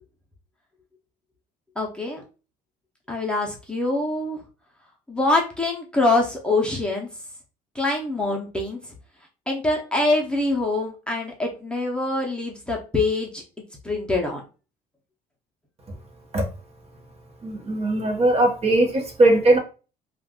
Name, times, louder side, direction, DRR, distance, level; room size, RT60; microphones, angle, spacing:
voice 1, 1.8-2.2 3.1-4.4 5.1-7.1 7.7-8.8 9.5-13.4 13.8-14.4, left 2 dB, 5° left, 0.8 m, -24 dB
voice 2, 17.4-19.6, right 2 dB, 35° right, 1.1 m, -19 dB
2.5 x 2.5 x 3.6 m
cardioid pair, 110°, 17 cm